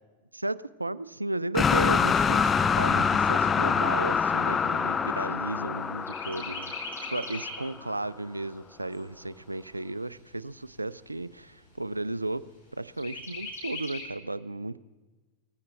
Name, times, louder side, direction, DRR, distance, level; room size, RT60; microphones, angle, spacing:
voice 1, 0.3-6.7 7.0-14.8, right 2 dB, 85° right, 19 dB, 0.4 m, -34 dB
sound 1, 1.5-7.6, left 6 dB, 20° left, 0.4 m, -25 dB
Chirp tweet, 2.0-5.7 6.1-7.7 8.2-8.3 8.6-9.6 10.2-10.3 10.6-10.7 11.2-11.7 13.0-14.0, left 3 dB, 85° left, 5.2 m, -41 dB
18.0 x 15.0 x 3.3 m, 1.3 s
figure-of-eight pair, 90°, 0 cm